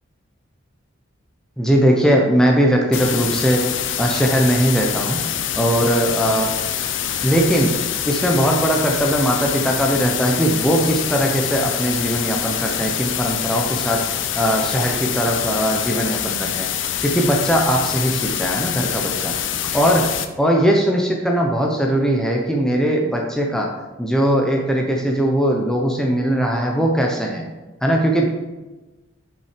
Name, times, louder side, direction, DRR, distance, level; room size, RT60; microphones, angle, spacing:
voice 1, 1.6-3.6 4.0-5.2 5.5-6.5 7.2-7.7 8.1-16.7 17.0-23.7 24.0-27.4 27.8-28.2, equal, 5° left, 0 dB, 0.8 m, -19 dB
sound 1, 2.9-20.3, left 9 dB, 65° left, 0.6 m, -25 dB
7.5 x 5.8 x 5.0 m, 1.1 s
head